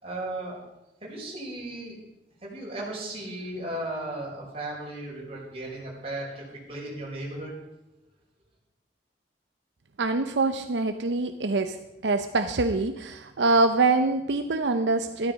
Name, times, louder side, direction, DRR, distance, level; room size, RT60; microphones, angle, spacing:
voice 1, 0.0-0.6 1.0-2.0 2.4-7.6, right 1 dB, 35° right, -4 dB, 5.4 m, -36 dB
voice 2, 10.0-11.8 12.0-15.3, right 3 dB, 80° right, 8 dB, 0.7 m, -24 dB
14.0 x 12.5 x 5.3 m, 0.92 s
head